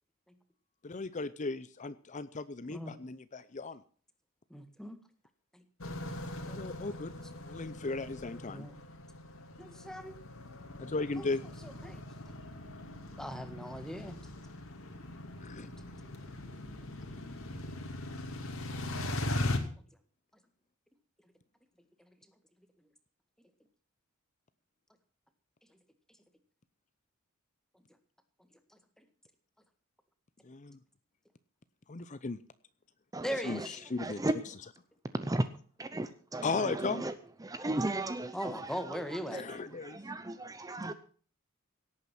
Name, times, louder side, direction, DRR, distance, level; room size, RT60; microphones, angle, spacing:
voice 1, 0.8-3.8 6.5-7.1 7.4-8.7 10.8-11.4 15.4-15.7 30.4-30.8 31.9-32.4 33.4-34.2 36.4-37.0 39.3-40.0, left 3 dB, 35° left, 0.6 m, -36 dB
voice 2, 4.5-5.0 5.5-5.6 8.5-8.8 9.6-10.2 11.2-11.3 11.6-12.1 13.1-14.2 15.8-15.9 17.5-17.6 18.1-18.2 19.5-19.9 22.0-22.1 22.8-22.9 25.7-25.8 29.0-29.1 33.2-33.8 38.3-39.4, equal, 5° left, 1.7 m, -40 dB
sound 1, 5.8-19.6, left 1 dB, 70° left, 2.5 m, -40 dB
voice 3, 33.1-33.7 34.0-34.3 35.1-35.5 35.8-37.1 37.4-40.9, right 2 dB, 15° right, 0.7 m, -36 dB
17.5 x 8.8 x 6.0 m
head